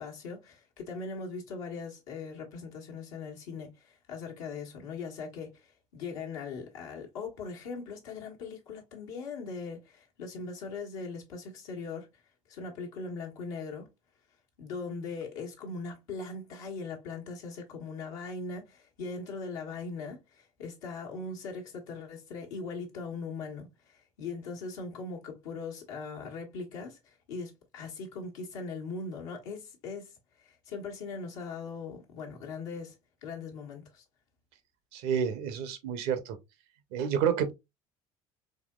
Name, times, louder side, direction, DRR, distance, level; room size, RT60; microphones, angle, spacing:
voice 1, 0.0-12.1 12.5-13.9 14.6-30.1 30.4-32.9 33.2-34.0, left 4 dB, 70° left, 1.2 m, -40 dB
voice 2, 34.9-36.4 36.9-37.5, right 8 dB, 60° right, 0.7 m, -29 dB
4.1 x 2.8 x 2.2 m
hypercardioid pair, 60°, 18 cm